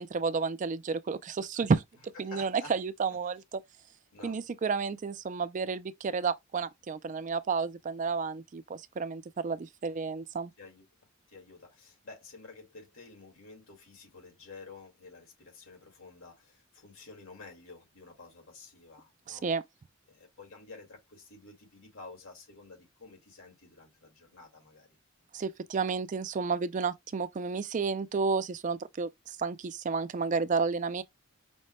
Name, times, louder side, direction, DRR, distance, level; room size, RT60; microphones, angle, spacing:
voice 1, 0.0-3.6 4.2-10.5 19.3-19.6 25.3-31.0, right 5 dB, 40° right, 0.3 m, -31 dB
voice 2, 2.3-2.7 4.1-4.4 10.6-10.9 11.3-19.4 20.1-24.9, left 3 dB, 90° left, 2.0 m, -51 dB
5.3 x 2.2 x 3.1 m
head